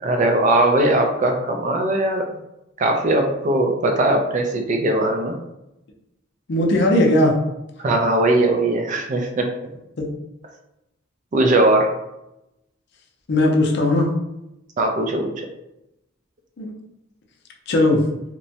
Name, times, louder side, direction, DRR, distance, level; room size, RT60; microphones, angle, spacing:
voice 1, 0.0-2.3 2.8-5.4 7.8-9.5 11.3-11.9 14.8-15.5, right 1 dB, 40° right, 3 dB, 0.4 m, -19 dB
voice 2, 6.5-7.4 13.3-14.1 16.6-16.7 17.7-18.0, left 1 dB, 55° left, 1 dB, 0.5 m, -17 dB
2.9 x 2.2 x 2.7 m, 0.88 s
head